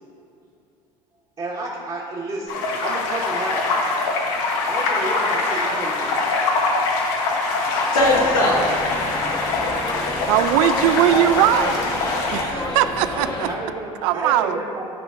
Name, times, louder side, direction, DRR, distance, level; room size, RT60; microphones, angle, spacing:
voice 1, 1.4-3.8 4.7-6.3 13.1-14.9, right 2 dB, 30° right, -7 dB, 1.5 m, -31 dB
sound 1, 2.5-12.4, left 3 dB, 70° left, 1.1 m, -23 dB
voice 2, 7.5-9.6, left 1 dB, 85° left, -4 dB, 1.7 m, -23 dB
sound 2, 8.0-13.5, left 2 dB, 25° left, 1.2 m, -29 dB
voice 3, 10.3-11.8 12.3-13.5 14.0-14.6, right 12 dB, 65° right, 12 dB, 0.4 m, -19 dB
12.5 x 5.0 x 2.5 m, 2.6 s
hypercardioid pair, 70°, 18 cm